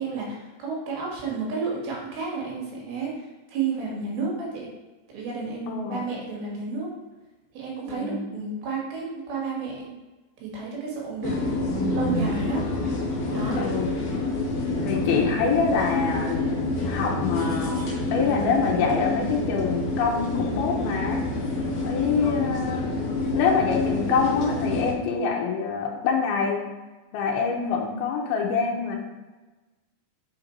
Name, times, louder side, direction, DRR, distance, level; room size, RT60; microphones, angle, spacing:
voice 1, 0.0-4.7 5.1-6.9 7.5-10.0 10.4-11.5 11.9-12.7 13.3-13.6 15.0-15.2 16.7-16.8, right 4 dB, 75° right, -3 dB, 3.5 m, -31 dB
voice 2, 5.7-6.0 7.9-8.2 13.6-13.9 14.8-17.7 18.1-21.2 21.8-22.9 23.3-26.6 27.1-29.0, left 5 dB, 90° left, -1 dB, 2.7 m, -25 dB
sound 1, 11.2-24.9, left 2 dB, 65° left, 1.7 m, -27 dB
7.0 x 3.9 x 4.4 m, 1.2 s
omnidirectional pair, 4.4 m